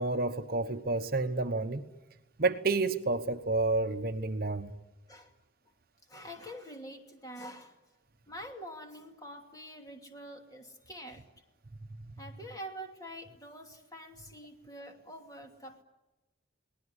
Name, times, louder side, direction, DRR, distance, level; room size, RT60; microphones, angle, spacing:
voice 1, 0.0-1.8 2.4-4.7, right 3 dB, 50° right, 1.0 m, -30 dB
voice 2, 6.1-7.8 8.3-11.3 12.2-15.8, equal, 20° left, 2.7 m, -46 dB
29.5 x 19.0 x 9.9 m
head